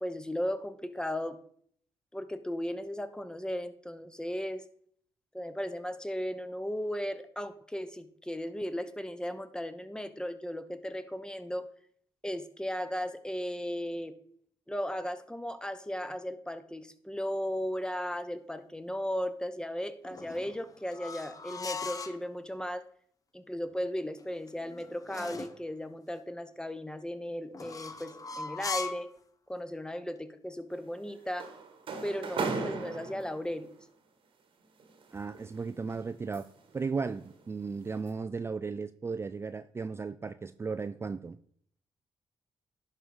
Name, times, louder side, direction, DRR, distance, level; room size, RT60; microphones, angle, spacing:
voice 1, 0.0-1.4 2.1-4.6 5.3-11.7 12.2-14.1 14.7-22.9 23.3-29.1 29.5-31.5 32.0-33.7, equal, 10° left, 0.9 m, -36 dB
sound 1, 20.0-22.2 24.2-25.6 27.5-29.1, left 4 dB, 40° left, 0.8 m, -39 dB
sound 2, 30.7-33.7 34.8-36.7 37.2-37.4 37.9-38.1, right 4 dB, 65° right, 1.3 m, -37 dB
voice 2, 35.1-36.5 36.7-41.4, right 4 dB, 25° right, 0.3 m, -35 dB
11.0 x 3.9 x 4.7 m
supercardioid pair, 60°, 10 cm